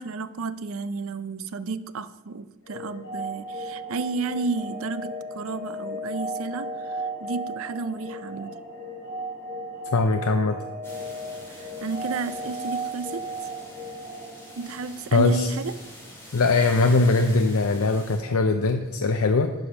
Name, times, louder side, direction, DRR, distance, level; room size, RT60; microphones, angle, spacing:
voice 1, 0.0-8.6 11.5-13.2 14.6-15.7, right 4 dB, 70° right, 14 dB, 0.5 m, -32 dB
sound 1, 2.6-15.4, right 1 dB, 50° left, 3.5 m, -35 dB
voice 2, 9.9-10.5 15.1-15.5 16.3-19.5, left 3 dB, 80° left, 6 dB, 0.6 m, -21 dB
sound 2, 10.8-18.2, left 1 dB, 10° left, 2.2 m, -45 dB
10.5 x 5.0 x 6.0 m, 1.1 s
head